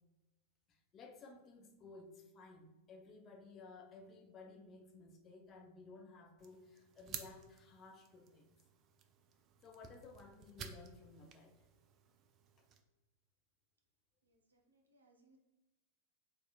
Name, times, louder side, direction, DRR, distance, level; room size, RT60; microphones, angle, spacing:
voice 1, 0.7-8.5 9.6-11.6 12.6-12.7, left 3 dB, 30° left, 3 dB, 0.5 m, -56 dB
sound 1, 6.4-12.8, right 7 dB, 35° right, 0.3 m, -54 dB
voice 2, 14.2-15.4, right 2 dB, 75° right, 1 dB, 0.6 m, -71 dB
4.1 x 2.4 x 2.2 m, 1.1 s
figure-of-eight pair, 90°, 0 cm